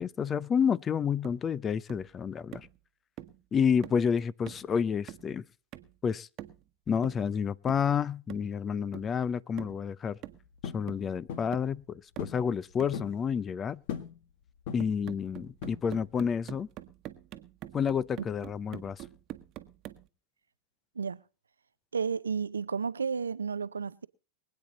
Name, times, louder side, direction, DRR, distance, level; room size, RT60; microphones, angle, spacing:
voice 1, 0.0-2.7 3.5-5.4 6.0-6.3 6.9-10.2 10.7-13.8 14.7-16.7 17.7-19.0, left 7 dB, 25° left, 0.6 m, -29 dB
sound 1, 1.2-1.5 1.9-2.1 2.5-2.8 3.2-3.4 3.8-4.1 4.5-4.7 5.1-5.4 5.7-6.0 6.4-6.7 7.0-7.3 7.7-7.9 8.3-8.5 8.9-9.2 9.6-9.8 10.2-10.6 10.9-11.1 11.5-11.8 12.2-12.4 12.8-13.0 14.8-20.1, right 14 dB, 40° right, 1.2 m, -46 dB
sound 2, 10.6-10.9 11.3-11.6 12.2-12.4 12.7-13.2 13.9-14.2 14.7-15.0 15.6-16.1, left 8 dB, 60° left, 1.7 m, -38 dB
voice 2, 21.9-24.1, right 6 dB, 90° right, 0.6 m, -32 dB
23.5 x 8.8 x 4.0 m
hypercardioid pair, 100°, 0 cm